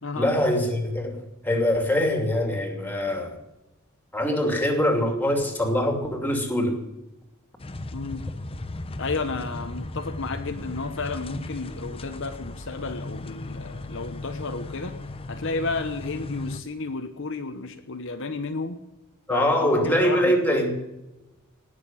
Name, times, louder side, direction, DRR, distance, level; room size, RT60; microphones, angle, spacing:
voice 1, 0.1-3.4 4.1-6.8 19.3-20.7, left 1 dB, 10° left, 2.7 m, -23 dB
sound 1, 7.6-16.6, left 2 dB, 25° left, 0.8 m, -36 dB
voice 2, 7.9-8.2 9.0-15.0 15.3-18.8 19.3-20.3, left 3 dB, 60° left, 1.1 m, -32 dB
18.5 x 6.9 x 8.8 m
head